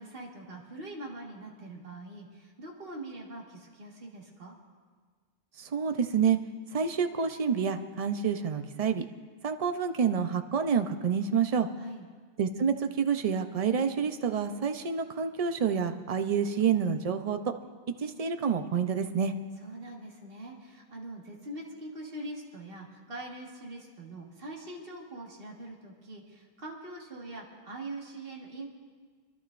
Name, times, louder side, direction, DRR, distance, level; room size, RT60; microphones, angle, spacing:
voice 1, 0.0-4.6 11.8-12.1 19.6-28.6, right 2 dB, 65° right, -2 dB, 1.9 m, -43 dB
voice 2, 5.6-6.4 6.7-9.1 9.4-11.7 12.4-17.5 18.0-19.3, right 6 dB, 40° right, 8 dB, 0.7 m, -28 dB
29.5 x 12.0 x 2.5 m, 1.5 s
omnidirectional pair, 1.0 m